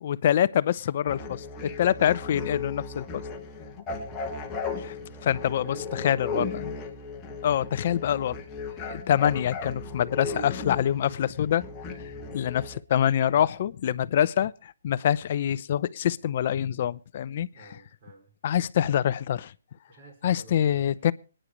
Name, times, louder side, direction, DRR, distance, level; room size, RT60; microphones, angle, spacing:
voice 1, 0.0-3.2 4.8-4.9 5.2-6.4 7.4-8.4 8.9-11.6 12.3-17.8 18.4-19.5 20.2-21.1, left 10 dB, 40° left, 0.7 m, -25 dB
sound 1, 1.1-12.8, left 4 dB, 15° left, 1.5 m, -36 dB
voice 2, 3.9-4.3 5.6-6.7 12.0-12.3 17.5-18.3 19.9-21.0, right 2 dB, 35° right, 5.2 m, -47 dB
25.5 x 10.0 x 3.1 m
hypercardioid pair, 165°, 0 cm